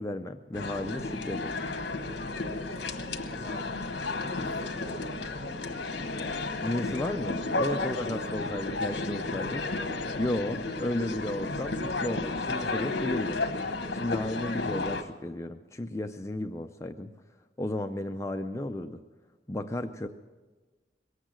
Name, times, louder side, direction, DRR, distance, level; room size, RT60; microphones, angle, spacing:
voice 1, 0.0-1.6 6.6-9.6 10.2-13.4 13.9-17.1 17.6-19.0 19.5-20.1, left 1 dB, 15° left, 6 dB, 0.4 m, -33 dB
sound 1, 0.5-15.0, left 3 dB, 65° left, 1.2 m, -33 dB
voice 2, 2.9-5.6, equal, 45° right, -4 dB, 4.1 m, -48 dB
21.5 x 8.2 x 7.4 m, 1.3 s
head